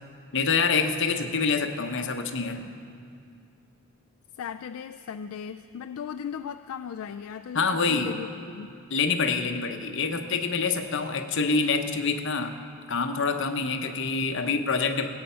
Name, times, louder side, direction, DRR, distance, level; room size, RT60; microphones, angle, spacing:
voice 1, 0.3-2.7 7.5-8.1 8.9-12.5 12.9-15.1, left 4 dB, 60° left, 6 dB, 0.8 m, -26 dB
voice 2, 4.4-8.7, left 7 dB, 75° left, 9 dB, 0.3 m, -37 dB
17.5 x 8.7 x 5.6 m, 2.4 s
head